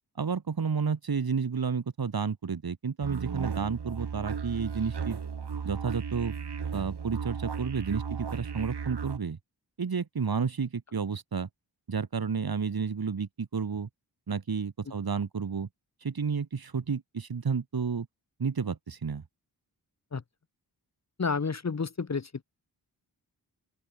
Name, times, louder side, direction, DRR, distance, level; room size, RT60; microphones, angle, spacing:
voice 1, 0.2-5.2 5.6-6.3 6.7-9.4 9.8-11.5 11.9-13.9 14.3-15.7 16.0-18.1 18.4-19.2, right 5 dB, 60° right, 5.0 m, -31 dB
sound 1, 3.0-9.2, right 6 dB, 80° right, 5.3 m, -35 dB
voice 2, 21.2-22.4, left 5 dB, 40° left, 1.9 m, -30 dB
open air
wide cardioid pair, 145°, 40 cm